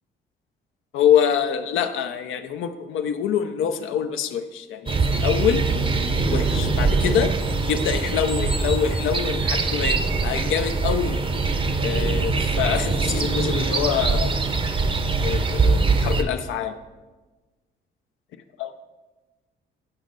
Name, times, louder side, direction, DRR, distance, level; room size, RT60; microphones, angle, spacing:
voice 1, 0.9-5.7 6.3-7.3 7.7-11.2 11.8-14.3 15.2-16.7 18.6-18.7, left 8 dB, 80° left, 8 dB, 0.5 m, -25 dB
sound 1, 4.9-16.2, right 4 dB, 25° right, 0.6 m, -23 dB
7.2 x 5.1 x 3.9 m, 1.2 s
cardioid pair, 90°, 20 cm